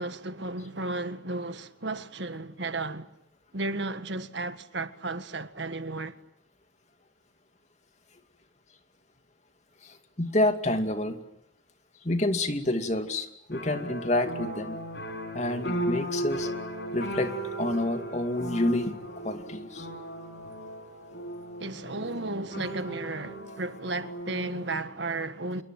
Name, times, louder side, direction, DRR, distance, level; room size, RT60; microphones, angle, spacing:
voice 1, 0.0-3.1 3.5-6.1 21.6-25.6, right 2 dB, 70° right, 1.7 m, -34 dB
voice 2, 9.8-11.2 12.0-14.8 15.3-16.5 16.9-17.3 17.6-19.0 19.2-19.9, left 1 dB, 35° left, 2.4 m, -28 dB
sound 1, 13.5-24.8, equal, 60° left, 6.5 m, -36 dB
27.5 x 23.5 x 9.2 m
head